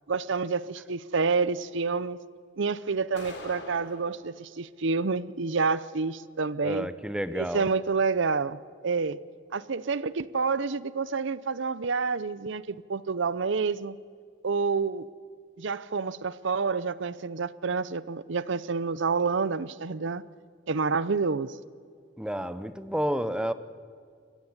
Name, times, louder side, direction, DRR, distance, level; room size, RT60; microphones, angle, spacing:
voice 1, 0.1-2.2 2.6-6.9 7.3-9.2 9.5-14.0 14.4-15.1 15.6-20.2 20.7-21.6, right 4 dB, 65° right, 0.7 m, -28 dB
sound 1, 3.2-4.2, left 2 dB, 60° left, 3.3 m, -42 dB
voice 2, 6.6-7.7 22.2-23.5, equal, 5° right, 0.8 m, -30 dB
22.5 x 15.5 x 9.7 m
head